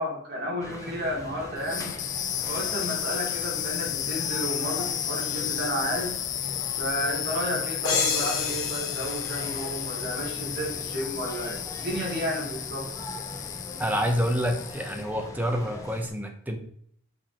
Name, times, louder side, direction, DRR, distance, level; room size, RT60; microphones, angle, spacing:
voice 1, 0.0-2.0 2.5-6.1 6.8-12.9, equal, 50° right, -1 dB, 2.4 m, -32 dB
sound 1, 0.6-16.1, left 1 dB, 15° left, 1.1 m, -41 dB
sound 2, 1.6-15.1, left 11 dB, 35° left, 0.4 m, -33 dB
sound 3, 7.8-10.5, left 5 dB, 75° left, 2.1 m, -30 dB
voice 2, 13.8-16.6, equal, 10° right, 4 dB, 0.9 m, -27 dB
7.9 x 4.8 x 4.4 m, 0.65 s
head